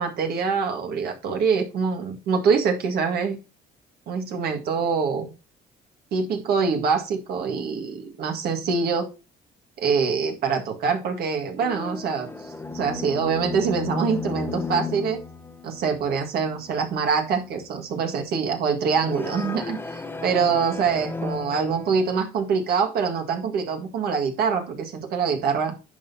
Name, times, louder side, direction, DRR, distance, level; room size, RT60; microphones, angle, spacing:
voice 1, 0.0-3.4 4.1-5.3 6.1-9.1 9.8-15.2 15.6-25.7, right 5 dB, 65° right, 4 dB, 1.8 m, -25 dB
sound 1, 11.6-17.0 17.3-17.7 18.9-22.2, left 4 dB, 10° left, 1.0 m, -34 dB
10.5 x 5.6 x 2.8 m, 0.30 s
cardioid pair, 110°, 17 cm